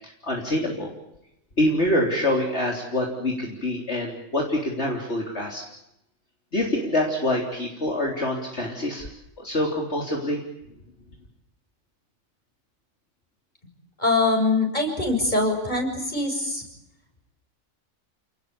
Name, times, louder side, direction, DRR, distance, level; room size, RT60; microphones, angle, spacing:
voice 1, 0.2-0.9 1.6-5.6 6.5-9.1 9.4-10.4, left 1 dB, 50° left, 0 dB, 4.0 m, -25 dB
voice 2, 14.0-16.6, left 2 dB, 35° left, 3 dB, 7.6 m, -23 dB
30.0 x 20.0 x 8.6 m, 0.85 s
omnidirectional pair, 1.4 m